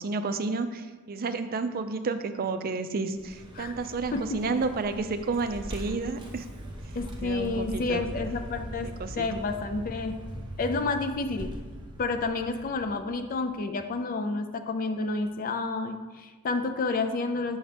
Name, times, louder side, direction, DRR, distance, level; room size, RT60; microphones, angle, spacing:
voice 1, 0.0-6.4 7.2-8.0 8.8-9.3, right 4 dB, 45° right, 10 dB, 0.4 m, -31 dB
Vehicle, 3.1-13.5, equal, 20° right, 0.8 m, -41 dB
voice 2, 7.0-10.1 10.6-11.5 12.0-17.6, left 3 dB, 40° left, 8 dB, 0.4 m, -30 dB
7.0 x 5.3 x 3.3 m, 1.3 s
head